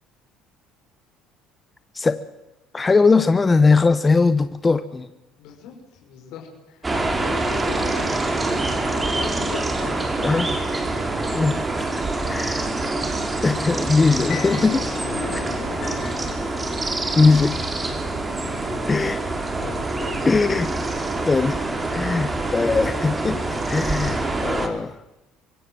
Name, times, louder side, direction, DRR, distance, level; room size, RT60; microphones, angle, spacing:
voice 1, 2.7-5.1 10.2-10.5 11.3-12.7 13.4-14.9 17.2-17.6 18.9-19.2 20.3-20.7 21.3-25.0, left 4 dB, 20° left, 11 dB, 1.0 m, -20 dB
voice 2, 5.4-10.6 10.9-11.5 15.0-16.1 18.5-19.1 19.6-20.6, left 6 dB, 75° left, 2 dB, 5.1 m, -39 dB
sound 1, 6.8-24.7, right 2 dB, 20° right, 3.4 m, -26 dB
sound 2, 10.0-10.9 14.3-18.9, left 8 dB, 50° left, 2.7 m, -37 dB
24.5 x 17.0 x 7.7 m, 0.98 s
cardioid pair, 105°, 0 cm